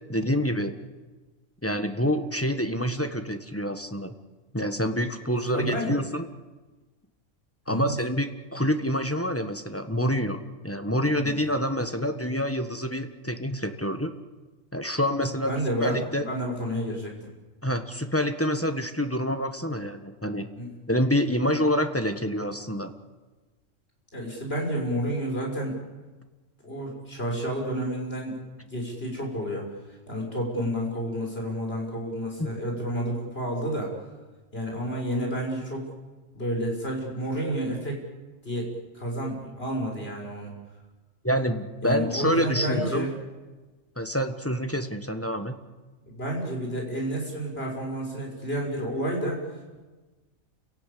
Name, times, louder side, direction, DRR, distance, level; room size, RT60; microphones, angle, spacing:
voice 1, 0.1-0.7 1.6-4.1 4.5-6.3 7.7-14.1 14.7-15.5 15.8-16.3 17.6-20.5 20.9-22.9 32.4-32.5 41.2-43.0 44.0-45.5, equal, 10° left, 7 dB, 1.4 m, -27 dB
voice 2, 5.5-6.0 7.7-7.9 11.2-11.4 15.5-17.1 20.6-20.7 24.1-25.7 26.6-28.4 28.7-29.7 30.1-33.9 34.5-35.8 36.3-38.0 38.4-40.5 41.8-43.2 46.1-49.4, equal, 50° left, 0 dB, 6.1 m, -30 dB
29.0 x 17.5 x 8.5 m, 1.2 s
omnidirectional pair, 1.4 m